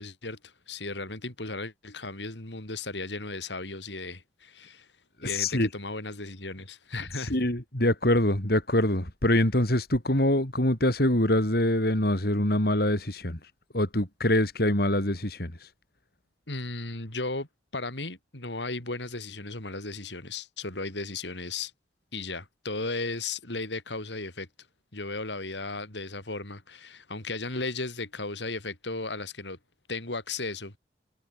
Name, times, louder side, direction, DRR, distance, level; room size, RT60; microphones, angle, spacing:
voice 1, 0.0-4.9 5.2-7.3 16.5-17.5 17.7-21.7 22.1-24.5 24.9-29.6 29.9-30.7, left 3 dB, 80° left, 5.1 m, -35 dB
voice 2, 5.2-5.7 7.2-15.7, left 1 dB, 60° left, 4.2 m, -25 dB
head